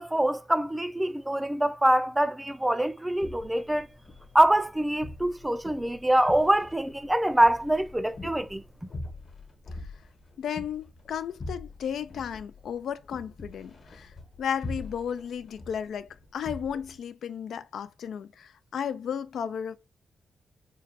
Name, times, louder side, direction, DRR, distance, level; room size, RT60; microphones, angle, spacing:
voice 1, 0.0-3.9 4.3-8.6, right 1 dB, 10° right, 0.4 m, -24 dB
sound 1, 3.1-17.0, left 2 dB, 55° left, 1.1 m, -43 dB
voice 2, 10.4-14.1 14.4-19.8, left 8 dB, 85° left, 0.3 m, -34 dB
3.8 x 2.2 x 3.9 m
cardioid pair, 110°, 0 cm